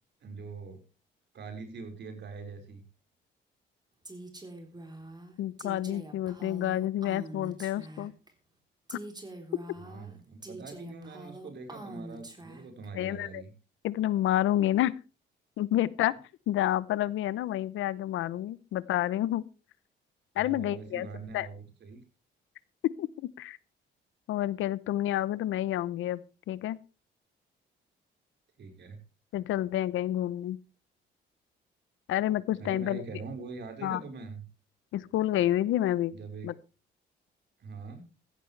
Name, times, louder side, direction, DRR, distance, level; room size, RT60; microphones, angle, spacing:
voice 1, 0.2-0.8 1.3-2.8 9.8-13.5 20.3-22.0 28.6-29.0 32.6-34.4 36.1-36.5 37.6-38.0, right 4 dB, 60° right, 5 dB, 4.8 m, -43 dB
Female speech woman speaking, 4.0-8.3 8.9-12.9, right 1 dB, 20° right, 3.8 m, -45 dB
voice 2, 5.4-8.1 8.9-9.0 12.9-13.4 13.8-14.9 15.6-16.1 16.5-19.4 20.4-21.1 21.3-21.5 22.8-23.6 24.3-26.2 26.5-26.8 29.3-30.6 32.1-33.0 33.8-34.0 34.9-36.2 36.4-36.5, left 13 dB, 80° left, 19 dB, 0.8 m, -29 dB
16.0 x 15.0 x 3.3 m, 0.33 s
cardioid pair, 90°, 20 cm